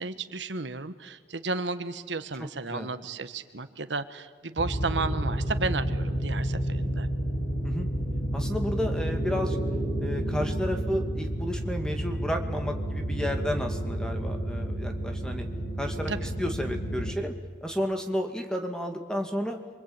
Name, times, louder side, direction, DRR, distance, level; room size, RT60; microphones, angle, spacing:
voice 1, 0.0-7.1 16.1-16.2, right 3 dB, 90° right, 11 dB, 1.4 m, -33 dB
voice 2, 2.4-2.9 7.6-7.9 8.3-9.6 10.0-15.5 15.8-17.3 17.6-19.6, equal, 5° left, 4 dB, 2.5 m, -32 dB
sound 1, 4.6-17.1, right 1 dB, 65° left, 6.2 m, -30 dB
27.5 x 24.0 x 9.0 m, 1.5 s
head